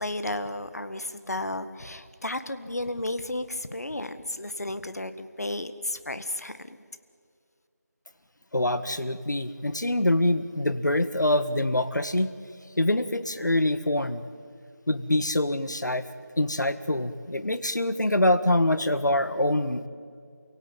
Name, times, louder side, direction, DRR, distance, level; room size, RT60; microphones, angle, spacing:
voice 1, 0.0-6.8, left 1 dB, 60° left, 10 dB, 1.6 m, -33 dB
voice 2, 8.5-12.3 12.8-14.2 14.9-16.1 16.4-19.9, left 1 dB, 80° left, 12 dB, 1.6 m, -25 dB
29.0 x 17.0 x 9.0 m, 2.3 s
figure-of-eight pair, 175°, 10 cm